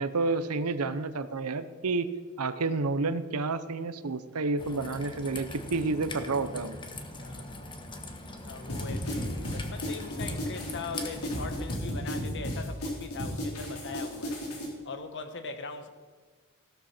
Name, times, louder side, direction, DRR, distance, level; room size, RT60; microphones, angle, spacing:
voice 1, 0.0-2.1 2.4-6.8, right 3 dB, 75° right, 0.8 m, -30 dB
Raindrop / Trickle dribble, 4.6-11.8, left 2 dB, 20° left, 1.3 m, -42 dB
voice 2, 7.1-7.9 8.4-14.6 14.8-15.9, left 4 dB, 55° left, 1.2 m, -41 dB
sound 1, 8.7-14.7, equal, 75° left, 3.9 m, -34 dB
16.0 x 12.5 x 4.4 m
head